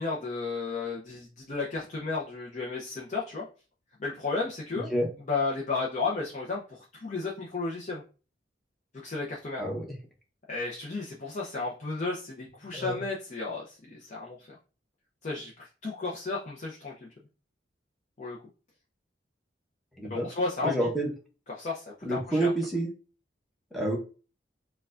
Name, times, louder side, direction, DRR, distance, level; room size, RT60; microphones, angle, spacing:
voice 1, 0.0-3.5 4.0-4.9 5.3-8.0 9.0-9.6 10.5-14.6 15.2-17.1 18.2-18.4 20.1-20.9 21.6-22.5, left 3 dB, 40° left, -3 dB, 0.6 m, -33 dB
voice 2, 4.7-5.1 9.6-9.9 12.7-13.0 20.0-20.3 20.6-21.1 22.0-22.9 23.7-24.0, right 1 dB, ahead, -1 dB, 0.8 m, -28 dB
4.5 x 2.3 x 2.4 m, 0.35 s
head